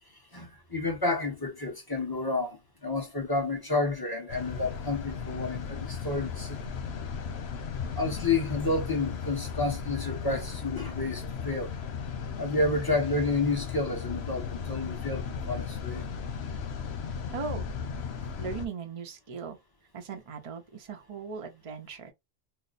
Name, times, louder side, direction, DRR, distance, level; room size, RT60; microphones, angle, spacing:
voice 1, 0.3-6.6 8.0-11.7 12.4-16.0, left 3 dB, 20° left, 1.1 m, -30 dB
sound 1, 4.3-18.7, left 6 dB, 85° left, 1.0 m, -36 dB
voice 2, 17.3-17.7 18.4-19.6 19.9-22.1, right 5 dB, 40° right, 0.6 m, -38 dB
3.2 x 2.0 x 4.0 m
omnidirectional pair, 1.1 m